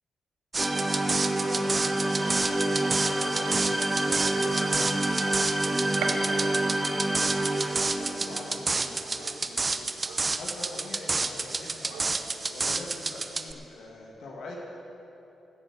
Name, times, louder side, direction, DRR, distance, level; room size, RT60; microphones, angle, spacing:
sound 1, 0.5-13.5, right 3 dB, 40° right, 0.7 m, -30 dB
sound 2, 0.6-9.0, right 1 dB, 15° right, 1.1 m, -28 dB
voice 1, 1.5-4.7 5.1-7.4 7.7-10.0 10.3-12.2 12.5-14.6, left 2 dB, 75° left, -2 dB, 1.9 m, -44 dB
Gunshot gunfire, 3.3-13.2, right 5 dB, 85° right, 0.8 m, -45 dB
14.5 x 7.7 x 7.0 m, 2.9 s
supercardioid pair, 45°, 0 cm